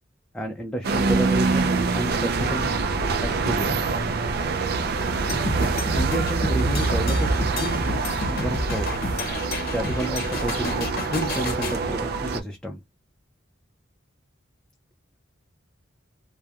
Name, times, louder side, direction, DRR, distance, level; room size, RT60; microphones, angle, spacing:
voice 1, 0.3-2.7 3.2-3.8 5.7-7.9 8.3-9.0 9.7-12.8, right 1 dB, 5° left, 0.5 m, -30 dB
sound 1, 0.8-12.4, right 4 dB, 55° right, 0.4 m, -25 dB
sound 2, 5.3-11.8, left 2 dB, 50° left, 0.7 m, -30 dB
3.0 x 2.1 x 2.3 m
head